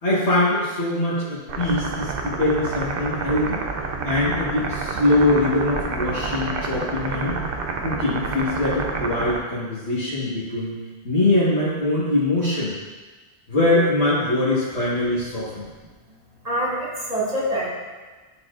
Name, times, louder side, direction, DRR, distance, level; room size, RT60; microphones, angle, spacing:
voice 1, 0.0-3.6 4.0-7.4 7.8-10.7 11.0-12.7 13.5-15.6, left 2 dB, 90° left, -10 dB, 1.7 m, -22 dB
sound 1, 1.5-9.4, right 4 dB, 65° right, 0.8 m, -28 dB
voice 2, 16.4-17.7, equal, 40° right, -5 dB, 1.6 m, -25 dB
9.8 x 4.2 x 2.5 m, 1.3 s
omnidirectional pair, 1.1 m